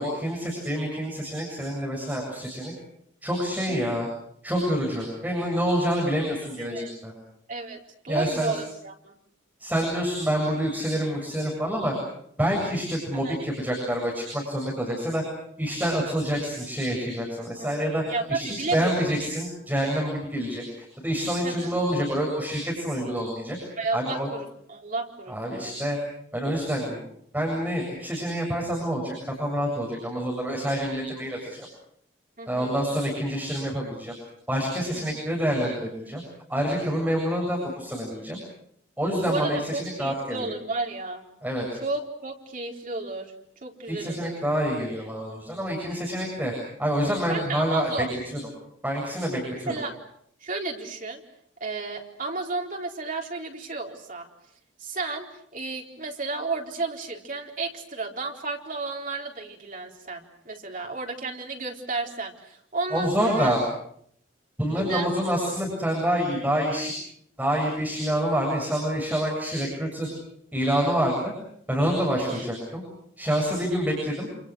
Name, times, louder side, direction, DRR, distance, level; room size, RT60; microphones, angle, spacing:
voice 1, 0.0-2.7 3.2-4.1 4.4-7.1 8.1-8.5 9.6-11.9 12.4-15.2 15.6-23.6 23.9-24.3 25.3-26.0 26.3-27.0 27.3-31.7 32.5-34.1 34.5-36.2 36.5-38.4 39.0-40.5 41.4-41.7 43.9-46.5 46.8-47.9 48.8-49.7 62.9-63.6 64.6-66.9 67.4-70.1 70.5-71.3 71.7-72.8 73.2-74.3, equal, 10° right, -2 dB, 7.6 m, -27 dB
voice 2, 6.6-6.9 7.5-9.2 13.2-13.4 17.6-19.0 21.4-21.7 23.8-25.8 32.4-32.8 34.9-35.0 39.2-41.2 41.8-43.3 43.6-44.3 47.3-48.1 49.7-49.9 50.4-51.2 51.6-54.3 54.8-63.5 64.7-65.1 72.2-72.5, right 3 dB, 45° right, 1 dB, 4.2 m, -32 dB
29.0 x 28.5 x 6.4 m, 0.69 s
head